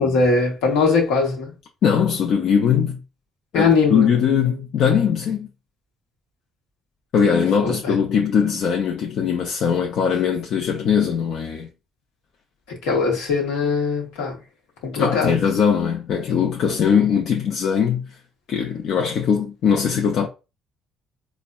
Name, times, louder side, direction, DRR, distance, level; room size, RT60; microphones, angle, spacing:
voice 1, 0.0-1.5 3.5-4.1 7.6-8.0 12.7-14.4 14.8-15.4, left 4 dB, 85° left, 0.9 m, -20 dB
voice 2, 1.8-3.0 3.5-5.5 7.1-11.7 14.9-18.1 18.5-20.3, left 7 dB, 70° left, 0.5 m, -20 dB
4.1 x 2.1 x 2.2 m
supercardioid pair, 65°, 0 cm